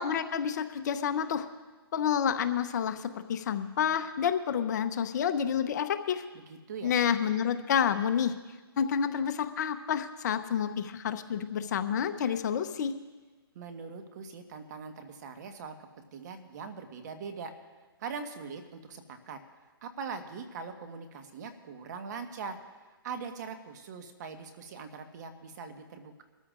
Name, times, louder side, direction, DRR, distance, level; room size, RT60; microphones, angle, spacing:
voice 1, 0.0-1.5 1.9-6.2 6.8-8.3 8.8-12.9, left 8 dB, 45° left, 10 dB, 0.8 m, -29 dB
voice 2, 6.3-6.9 13.5-15.7 16.1-17.5 18.0-19.4 19.8-22.6 23.0-26.2, right 5 dB, 45° right, 6 dB, 1.4 m, -41 dB
23.5 x 13.5 x 2.5 m, 1.3 s
hypercardioid pair, 150°, 13 cm